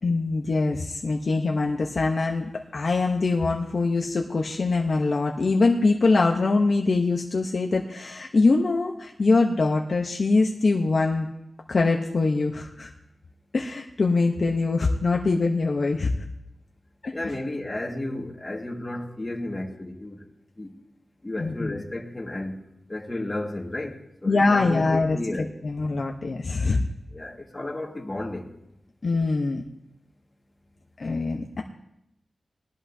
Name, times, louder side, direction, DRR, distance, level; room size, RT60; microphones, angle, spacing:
voice 1, 0.0-11.3 11.7-12.9 13.5-16.1 17.0-17.1 21.4-21.8 24.3-26.8 29.0-29.6 31.0-31.6, left 3 dB, 50° left, 0.9 m, -23 dB
voice 2, 17.1-20.2 20.6-20.7 21.2-22.5 22.9-23.9 24.2-25.5 27.1-28.5, left 1 dB, 20° left, 1.8 m, -32 dB
20.5 x 13.5 x 2.8 m
wide cardioid pair, 135°, 0 cm